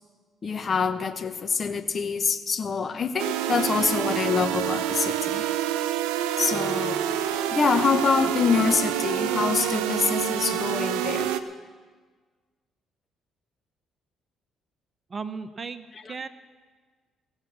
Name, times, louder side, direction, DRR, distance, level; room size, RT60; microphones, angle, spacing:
voice 1, 0.4-5.4 6.4-7.0 7.5-11.3, left 5 dB, 45° left, 11 dB, 0.9 m, -25 dB
sound 1, 3.2-11.4, right 11 dB, 80° right, 0.5 m, -27 dB
sound 2, 7.1-11.2, left 4 dB, 65° left, 1.5 m, -44 dB
voice 2, 15.1-16.3, right 5 dB, 40° right, 11 dB, 0.8 m, -36 dB
18.0 x 7.2 x 7.3 m, 1.5 s
hypercardioid pair, 55°, 0 cm